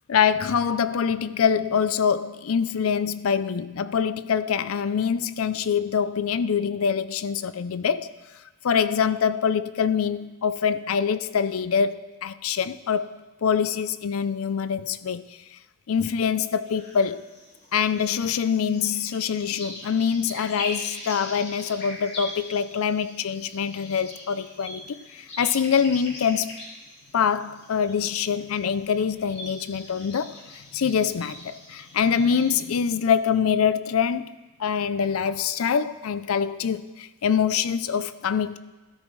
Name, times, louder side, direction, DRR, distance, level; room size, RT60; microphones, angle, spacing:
voice 1, 0.1-8.1 8.6-13.1 13.4-15.2 15.9-17.2 17.7-24.8 25.1-26.6 27.1-30.4 30.7-38.6, left 7 dB, 85° left, 0.5 m, -24 dB
sound 1, 16.6-32.5, left 1 dB, 55° left, 3.1 m, -41 dB
13.0 x 12.5 x 3.2 m
head